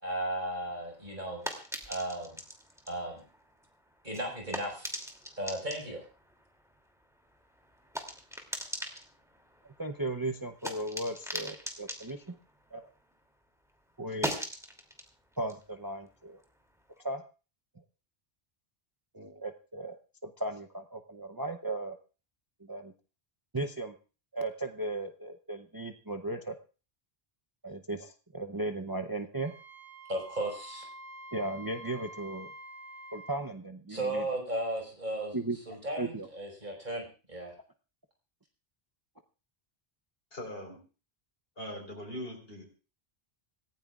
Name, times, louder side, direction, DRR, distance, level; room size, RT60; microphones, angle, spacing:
voice 1, 0.0-1.4 1.9-2.4 2.9-3.2 4.0-5.0 5.4-6.0 30.1-30.9 33.9-35.4 35.7-37.5, right 1 dB, 50° right, 1 dB, 5.4 m, -35 dB
sound 1, 0.6-13.4 13.7-16.9, equal, 5° right, 2.7 m, -42 dB
voice 2, 9.8-12.4 12.7-12.9 14.0-14.3 15.4-16.4 17.0-17.2 19.1-22.0 22.6-22.9 23.5-23.9 24.3-26.6 27.6-29.5 31.3-32.5 33.1-34.3 35.3-36.3, right 2 dB, 25° right, 6 dB, 0.7 m, -36 dB
Wind instrument woodwind instrument, 29.3-33.4, right 1 dB, 85° right, 3.9 m, -47 dB
voice 3, 40.3-40.8 41.6-42.6, left 1 dB, 70° left, -2 dB, 4.5 m, -41 dB
26.5 x 15.0 x 2.4 m, 0.36 s
omnidirectional pair, 1.0 m